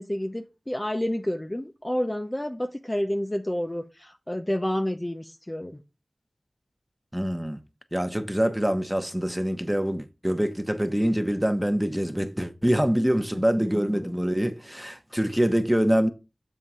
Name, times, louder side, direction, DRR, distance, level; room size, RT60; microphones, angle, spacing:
voice 1, 0.0-5.8 13.6-14.1, left 1 dB, 20° left, 0.6 m, -30 dB
voice 2, 7.1-7.6 7.9-16.1, equal, 5° right, 0.9 m, -25 dB
7.5 x 3.7 x 5.5 m
wide cardioid pair, 55°, 0 cm